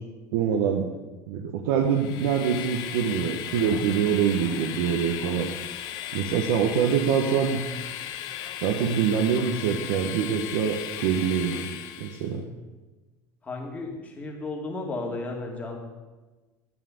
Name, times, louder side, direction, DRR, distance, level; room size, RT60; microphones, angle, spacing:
voice 1, 0.3-0.9 1.3-5.5 6.1-7.6 8.6-11.6 12.0-12.4, right 7 dB, 85° right, 2 dB, 1.3 m, -25 dB
Train, 1.8-12.3, left 11 dB, 60° left, 1.0 m, -36 dB
voice 2, 13.4-15.8, left 2 dB, 20° left, 1 dB, 2.3 m, -34 dB
10.0 x 9.4 x 8.0 m, 1.2 s
cardioid pair, 155°, 8 cm